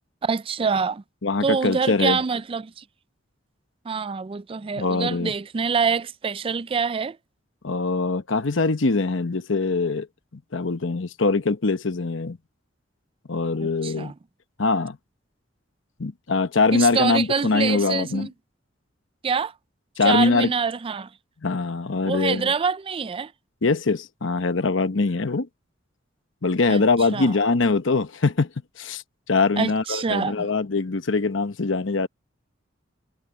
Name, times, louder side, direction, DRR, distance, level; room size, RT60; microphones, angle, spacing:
voice 1, 0.2-1.0 1.4-2.8 3.9-7.2 13.6-14.1 16.7-18.3 19.2-19.5 20.0-21.1 22.0-23.3 26.7-26.8 27.1-27.3 29.6-30.5, right 5 dB, 30° right, 0.4 m, -25 dB
voice 2, 1.2-2.2 4.8-5.3 7.6-10.1 10.5-12.4 13.3-14.1 14.6-15.0 16.0-18.3 20.0-20.5 21.4-22.5 23.6-25.5 26.4-28.5 28.8-29.0 29.3-32.1, left 3 dB, 70° left, 1.0 m, -23 dB
head